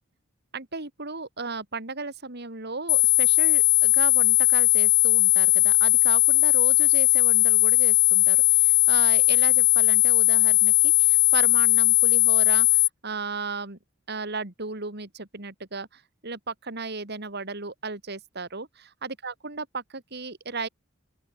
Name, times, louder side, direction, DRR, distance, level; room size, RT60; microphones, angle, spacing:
voice 1, 0.5-13.8 14.1-20.7, right 4 dB, 55° right, 3.0 m, -35 dB
sound 1, 2.9-12.9, left 21 dB, 75° left, 0.4 m, -19 dB
open air
head